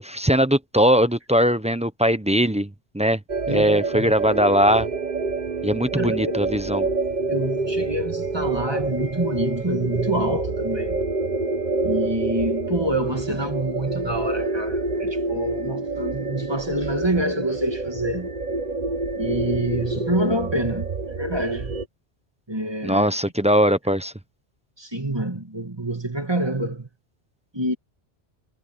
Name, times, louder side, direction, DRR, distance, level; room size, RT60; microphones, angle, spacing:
voice 1, 0.0-3.2 3.5-4.9 5.6-6.9 22.8-24.1, equal, 5° right, 0.7 m, -20 dB
sound 1, 3.3-21.9, right 3 dB, 40° right, 1.2 m, -27 dB
voice 2, 3.5-4.1 5.9-6.4 7.3-11.0 11.8-18.3 19.2-21.8 22.5-23.1 24.8-26.9 27.5-27.7, right 1 dB, 20° right, 2.4 m, -27 dB
omnidirectional pair, 1.1 m